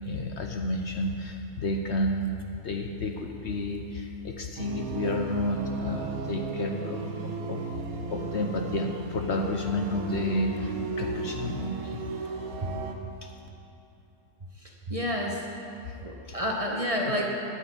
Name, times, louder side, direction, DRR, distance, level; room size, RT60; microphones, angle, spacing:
voice 1, 0.0-7.7 8.1-12.3 13.2-13.3 15.8-15.9 16.3-16.4, left 1 dB, 55° left, 3 dB, 1.0 m, -31 dB
sound 1, 4.6-13.0, right 4 dB, 80° right, 1.4 m, -35 dB
voice 2, 14.6-15.4 16.0-17.3, equal, 25° right, -1 dB, 1.2 m, -30 dB
9.7 x 9.3 x 8.5 m, 2.9 s
omnidirectional pair, 1.5 m